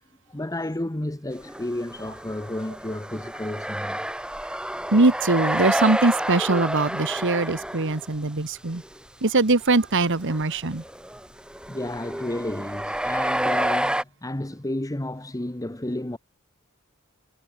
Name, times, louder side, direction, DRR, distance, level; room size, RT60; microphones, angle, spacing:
voice 1, 0.3-4.0 11.7-16.2, left 1 dB, 15° left, 1.0 m, -31 dB
sound 1, 1.4-8.2 8.7-9.0 9.2-9.4 10.0-14.0, right 1 dB, 5° right, 2.0 m, -29 dB
voice 2, 4.9-8.8 9.2-10.8, right 2 dB, 60° right, 1.5 m, -22 dB
head